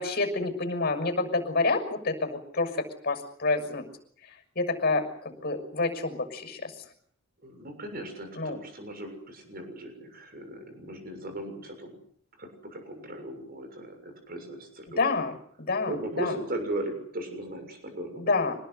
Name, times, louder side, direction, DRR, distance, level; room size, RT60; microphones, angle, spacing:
voice 1, 0.0-3.9 4.2-6.9 8.4-8.6 15.0-15.3 15.6-15.9 16.2-16.3 18.2-18.6, left 3 dB, 45° left, 6 dB, 6.4 m, -28 dB
voice 2, 7.4-12.0 12.4-15.1 15.8-18.3, right 1 dB, 45° right, 6 dB, 6.9 m, -37 dB
26.5 x 19.5 x 8.1 m, 0.63 s
head